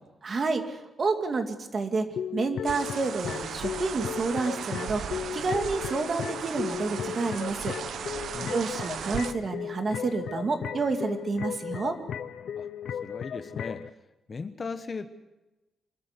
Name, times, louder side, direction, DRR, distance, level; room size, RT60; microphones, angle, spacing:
voice 1, 0.2-2.1 2.3-5.0 5.3-7.7 8.5-11.9, right 4 dB, 35° right, 6 dB, 2.3 m, -29 dB
sound 1, 2.1-13.9, left 8 dB, 70° left, 0.8 m, -36 dB
sound 2, 2.6-9.3, right 8 dB, 70° right, 1.1 m, -37 dB
voice 2, 13.0-13.9 14.3-15.1, left 4 dB, 30° left, 9 dB, 1.2 m, -37 dB
25.5 x 13.0 x 9.6 m, 1.0 s
wide cardioid pair, 145°, 0 cm